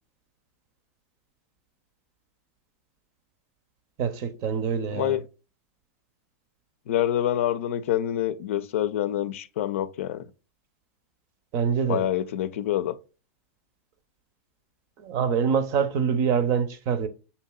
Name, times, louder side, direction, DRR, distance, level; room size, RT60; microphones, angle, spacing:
voice 1, 4.0-5.2 11.5-12.1 15.0-17.1, right 7 dB, 50° right, 0.7 m, -25 dB
voice 2, 4.9-5.3 6.9-10.3 11.9-12.9, left 12 dB, 75° left, 0.4 m, -26 dB
6.9 x 2.7 x 2.3 m
hypercardioid pair, 110°, 7 cm